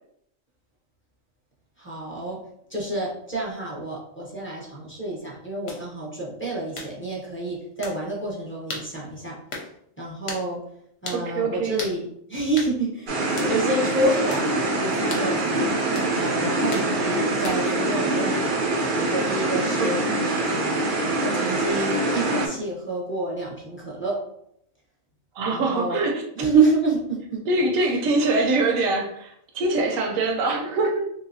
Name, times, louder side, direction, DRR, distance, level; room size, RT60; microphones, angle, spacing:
voice 1, 1.8-2.4 2.7-9.4 10.0-10.6 11.0-15.7 16.2-18.6 18.9-20.0 20.4-20.9 21.2-24.2 25.5-26.0 26.4-27.4 27.8-28.0, right 3 dB, 15° left, -6 dB, 0.5 m, -28 dB
sound 1, 5.7-5.8 6.7-6.9 7.8-8.0 8.7-8.9 9.5-9.7 10.3-10.5 11.0-11.2 11.8-12.0 12.6-12.7 13.4-13.5 14.3-14.5 15.1-15.3 15.9-16.1 16.7-16.9 17.4-17.7, left 3 dB, 55° left, 0.9 m, -34 dB
voice 2, 11.1-11.8 19.8-20.1 25.3-26.2 27.5-31.1, right 2 dB, 75° right, 2 dB, 1.0 m, -24 dB
sound 2, 13.1-22.5, right 2 dB, 55° right, 0.5 m, -24 dB
3.3 x 2.8 x 2.7 m, 0.72 s
omnidirectional pair, 1.4 m